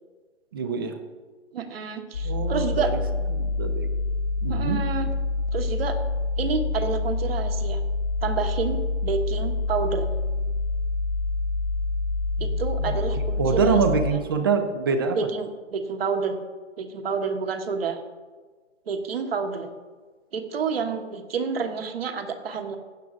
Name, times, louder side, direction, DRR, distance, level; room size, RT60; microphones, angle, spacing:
voice 1, 0.5-1.0 2.2-2.9 3.3-3.9 4.4-4.8 12.4-12.9 13.4-15.2, right 5 dB, 20° right, 8 dB, 0.5 m, -25 dB
voice 2, 1.5-2.9 4.5-5.1 5.5-6.0 6.4-7.8 8.2-10.1 12.4-13.8 15.1-16.4 16.8-18.0 18.9-19.7 20.3-22.8, right 5 dB, 50° right, 6 dB, 1.4 m, -29 dB
sound 1, 2.1-14.1, left 3 dB, 75° left, 1.5 m, -27 dB
15.5 x 9.2 x 2.5 m, 1.4 s
hypercardioid pair, 145°, 37 cm